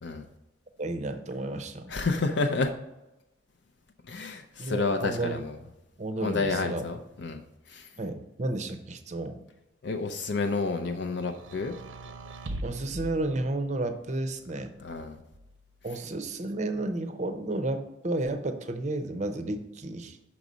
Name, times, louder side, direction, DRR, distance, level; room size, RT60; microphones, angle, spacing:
voice 1, 0.8-1.9 4.6-5.4 6.0-6.8 8.0-9.4 12.6-14.8 15.8-20.2, right 2 dB, 35° right, 8 dB, 0.6 m, -32 dB
voice 2, 1.9-2.7 4.1-5.5 6.2-7.4 7.7-7.9 9.8-11.8 14.8-15.2, left 3 dB, 60° left, 5 dB, 0.5 m, -30 dB
sound 1, 11.3-14.0 14.9-15.9, right 1 dB, 85° right, 0.7 m, -41 dB
6.0 x 4.0 x 6.2 m, 0.95 s
head